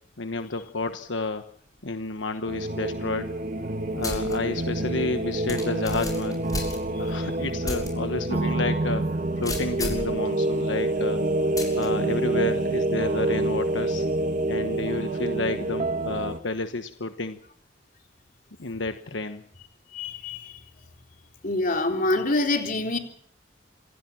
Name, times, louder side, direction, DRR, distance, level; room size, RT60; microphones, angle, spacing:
voice 1, 0.2-1.5 1.8-3.4 3.9-6.4 7.0-9.1 9.4-11.2 11.8-14.0 14.5-17.4 18.6-19.4, left 3 dB, 85° left, 8 dB, 1.3 m, -30 dB
sound 1, 2.5-16.4, right 2 dB, 45° right, 1.7 m, -27 dB
sound 2, 4.0-4.4 4.8-4.9 5.5-7.2 7.6-7.9 8.3-8.4 9.4-10.1 11.6-11.9, left 2 dB, 20° left, 7.0 m, -33 dB
voice 2, 19.9-20.6 21.4-23.0, left 2 dB, 50° left, 4 dB, 3.9 m, -26 dB
27.0 x 17.5 x 7.4 m, 0.65 s
head